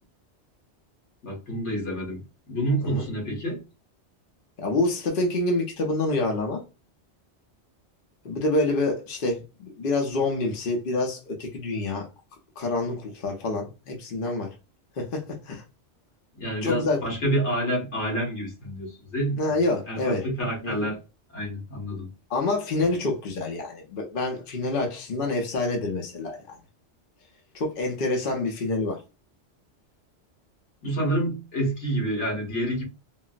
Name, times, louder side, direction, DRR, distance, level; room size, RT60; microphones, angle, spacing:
voice 1, 1.2-3.6 16.3-19.5 19.9-21.0 21.3-22.1 30.8-32.8, right 1 dB, 75° left, 1.6 m, -28 dB
voice 2, 4.6-6.6 8.2-12.1 12.6-14.5 15.0-15.6 16.6-17.0 19.4-20.3 20.6-20.7 22.3-26.6 27.5-29.0, left 2 dB, 55° left, 0.8 m, -27 dB
3.9 x 2.0 x 2.4 m
omnidirectional pair, 1.2 m